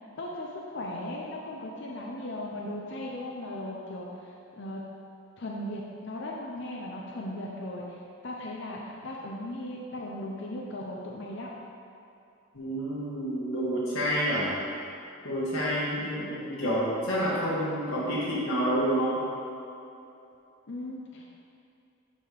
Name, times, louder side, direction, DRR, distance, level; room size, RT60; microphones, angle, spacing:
voice 1, 0.2-4.8 5.4-11.5 20.7-21.2, left 1 dB, 55° left, -2 dB, 0.6 m, -37 dB
voice 2, 12.5-14.5 15.2-19.2, equal, 85° left, -8 dB, 1.4 m, -28 dB
11.0 x 4.1 x 3.4 m, 2.7 s
head